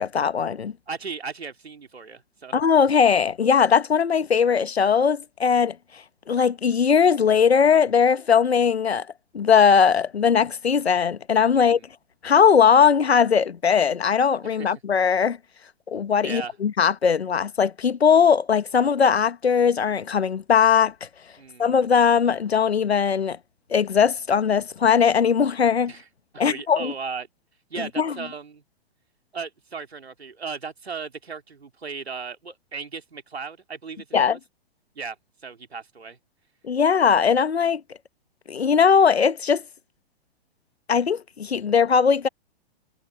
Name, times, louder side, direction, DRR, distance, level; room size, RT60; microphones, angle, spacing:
voice 1, 0.0-0.7 2.5-5.8 6.3-9.1 9.3-11.8 12.2-15.4 15.9-20.9 21.6-23.4 23.7-25.9 26.4-26.9 28.0-28.1 34.1-34.4 36.6-37.8 38.5-39.6 40.9-42.3, left 6 dB, 85° left, 1.1 m, -19 dB
voice 2, 0.9-2.6 11.6-11.8 14.4-14.7 16.2-16.5 21.4-21.7 25.9-26.0 26.3-27.3 27.7-28.6 29.3-34.4 34.9-35.2 35.4-36.2, right 5 dB, 90° right, 3.2 m, -36 dB
hypercardioid pair, 120°, 31 cm